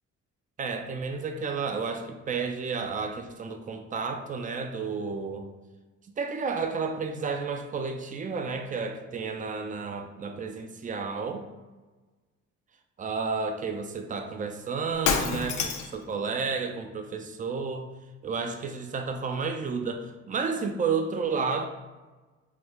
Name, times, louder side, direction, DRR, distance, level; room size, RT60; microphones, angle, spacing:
voice 1, 0.6-5.5 6.2-11.5 13.0-17.9 18.2-21.7, right 5 dB, 25° right, 6 dB, 0.4 m, -31 dB
Shatter, 15.0-16.0, left 6 dB, 75° left, 0.5 m, -27 dB
4.8 x 2.1 x 3.2 m, 1.3 s
cardioid pair, 90°, 30 cm